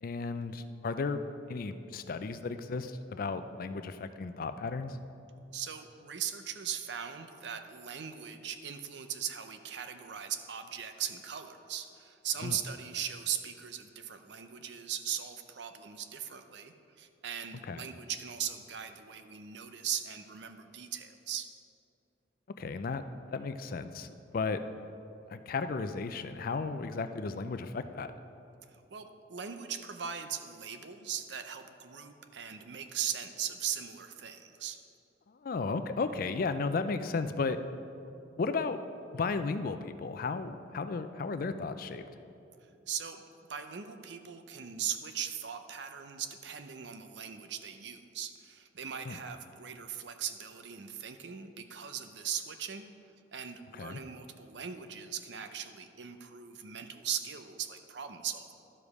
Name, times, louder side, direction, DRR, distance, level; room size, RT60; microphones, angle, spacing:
voice 1, 0.0-5.0 12.4-12.6 17.6-17.9 22.6-23.0 23.3-24.6 25.3-28.1 35.3-37.6 38.4-38.8 39.1-42.0 49.0-49.2 53.7-54.0, left 4 dB, 50° left, 10 dB, 0.4 m, -34 dB
voice 2, 5.5-21.5 28.7-34.8 42.9-43.2 43.5-52.9 53.3-58.5, right 8 dB, 65° right, 8 dB, 0.6 m, -39 dB
12.0 x 5.1 x 4.8 m, 2.7 s
head